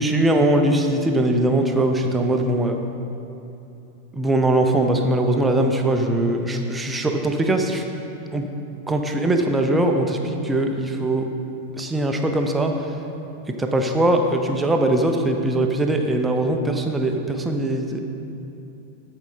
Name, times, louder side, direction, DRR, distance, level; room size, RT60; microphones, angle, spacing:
voice 1, 0.0-2.8 4.1-7.8 8.3-8.5 8.9-11.3 11.8-12.7 13.6-18.0, right 1 dB, 10° right, 4 dB, 0.8 m, -21 dB
14.0 x 5.4 x 4.0 m, 2.8 s
figure-of-eight pair, 90°, 0 cm